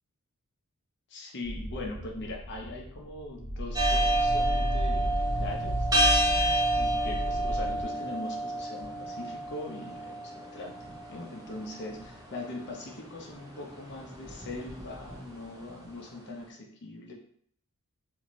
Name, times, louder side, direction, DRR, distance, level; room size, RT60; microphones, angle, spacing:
voice 1, 1.1-5.9 6.7-10.7 11.1-17.1, left 2 dB, 55° left, 0 dB, 0.6 m, -41 dB
sound 1, 1.4-7.8, right 1 dB, 65° right, 0.5 m, -32 dB
sound 2, 3.7-15.9, right 1 dB, 15° right, 0.6 m, -30 dB
2.7 x 2.5 x 3.0 m, 0.62 s
head